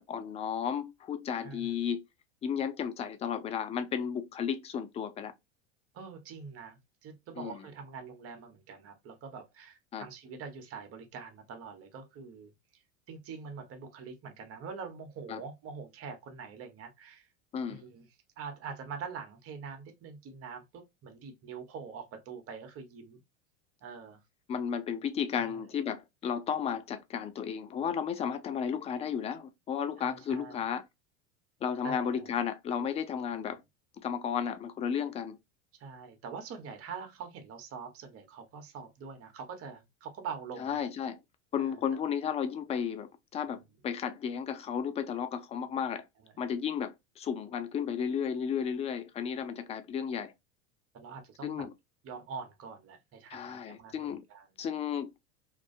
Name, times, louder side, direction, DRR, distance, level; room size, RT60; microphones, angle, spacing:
voice 1, 0.0-2.0 2.4-5.3 7.4-7.6 9.9-10.1 15.3-15.4 17.5-17.8 24.5-30.8 31.6-33.6 34.0-35.4 40.6-41.2 41.5-46.1 46.4-50.3 51.4-51.7 53.3-54.2 54.6-55.2, left 7 dB, 20° left, 0.3 m, -33 dB
voice 2, 1.4-1.7 5.9-12.8 13.1-17.3 17.7-18.1 18.4-23.2 23.8-24.2 25.4-25.6 30.0-30.6 31.8-32.3 35.8-40.9 41.6-41.8 46.2-46.3 50.9-51.7 52.0-54.5, right 5 dB, 40° right, 0.9 m, -44 dB
2.5 x 2.2 x 2.5 m
hypercardioid pair, 100°, 35 cm